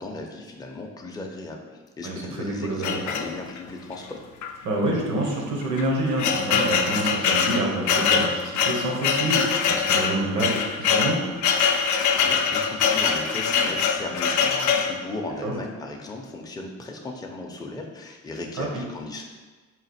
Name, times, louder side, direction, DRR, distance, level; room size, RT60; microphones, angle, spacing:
voice 1, 0.0-1.6 2.0-4.2 12.2-19.2, left 2 dB, 15° left, 1 dB, 0.5 m, -36 dB
voice 2, 2.0-3.0 4.6-11.2 15.4-15.5 18.6-18.7, right 1 dB, 75° right, 0 dB, 1.0 m, -27 dB
sound 1, 2.8-3.7 4.4-4.5 4.8-4.9 5.6-15.0, left 6 dB, 70° left, 0.5 m, -23 dB
3.9 x 2.4 x 4.2 m, 1.4 s
cardioid pair, 90°, 30 cm